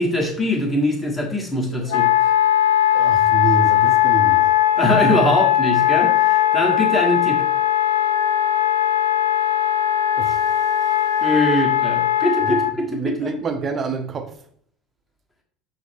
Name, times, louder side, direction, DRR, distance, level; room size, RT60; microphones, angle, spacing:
voice 1, 0.0-2.1 4.8-7.4 11.2-13.3, left 1 dB, 15° left, 1.3 m, -22 dB
Wind instrument woodwind instrument, 1.9-12.7, left 12 dB, 70° left, 0.3 m, -18 dB
voice 2, 2.9-4.5 10.2-10.4 12.4-12.6 12.9-14.3, right 4 dB, 30° right, 0.6 m, -27 dB
6.1 x 2.1 x 3.4 m
figure-of-eight pair, 65°, 0 cm